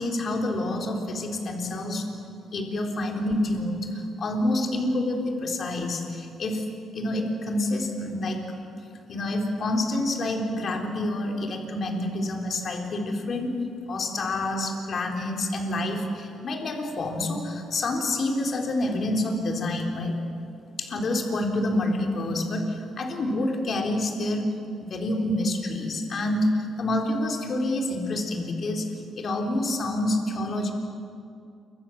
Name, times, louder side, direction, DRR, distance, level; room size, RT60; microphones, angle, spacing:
voice 1, 0.0-2.1 2.5-6.6 6.9-8.4 9.1-13.5 13.9-20.2 20.8-24.5 24.8-28.9 29.2-30.7, left 1 dB, 50° left, 2 dB, 4.0 m, -27 dB
28.5 x 25.0 x 7.4 m, 2.5 s
cardioid pair, 90°, 0 cm